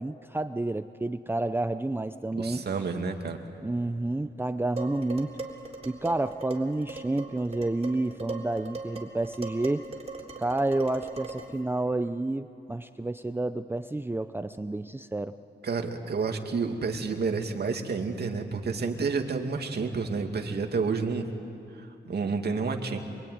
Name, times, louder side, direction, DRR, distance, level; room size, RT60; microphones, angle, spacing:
voice 1, 0.0-2.6 3.6-5.4 5.9-9.9 10.4-15.3, right 2 dB, 10° right, 10 dB, 0.6 m, -30 dB
voice 2, 2.3-3.4 15.6-21.3 21.7-23.0, right 4 dB, 65° right, 4 dB, 2.4 m, -30 dB
Dishes pots and pans, 4.8-11.6, right 3 dB, 35° right, 3.7 m, -40 dB
26.0 x 23.5 x 9.5 m, 2.7 s
wide cardioid pair, 95°, 18 cm